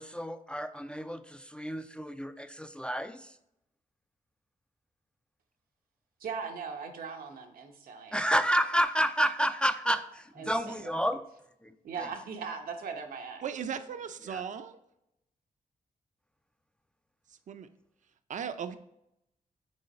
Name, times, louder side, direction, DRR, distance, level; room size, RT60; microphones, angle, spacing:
voice 1, 0.0-3.3 8.1-11.2 11.6-11.7 14.2-14.4, equal, 5° left, 10 dB, 0.3 m, -30 dB
voice 2, 6.2-8.3 10.4-11.0 11.8-13.5, right 5 dB, 85° right, 4 dB, 0.9 m, -39 dB
voice 3, 13.4-14.8 17.5-17.7 18.3-18.8, right 7 dB, 60° right, 10 dB, 0.5 m, -37 dB
6.3 x 3.8 x 4.2 m, 0.80 s
cardioid pair, 90°, 15 cm